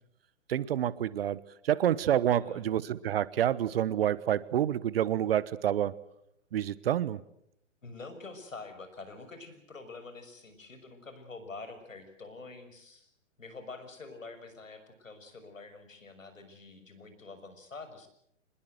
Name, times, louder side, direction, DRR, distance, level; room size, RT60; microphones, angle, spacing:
voice 1, 0.5-1.4 1.6-5.9 6.5-7.2, right 11 dB, 50° right, 19 dB, 1.2 m, -28 dB
voice 2, 7.8-13.1 13.4-18.1, left 3 dB, 85° left, 9 dB, 6.3 m, -46 dB
26.0 x 20.5 x 8.0 m, 0.73 s
hypercardioid pair, 135°, 38 cm